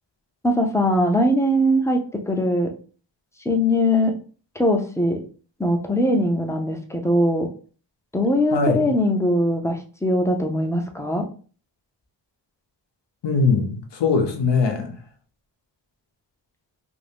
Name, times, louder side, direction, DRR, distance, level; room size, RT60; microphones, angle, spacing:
voice 1, 0.4-2.7 3.5-4.2 4.6-5.2 5.6-7.5 8.1-11.2, left 1 dB, 5° left, 0.5 m, -21 dB
voice 2, 8.5-8.9 13.2-14.9, left 4 dB, 75° left, 0.8 m, -21 dB
2.7 x 2.6 x 3.4 m
wide cardioid pair, 80°, 43 cm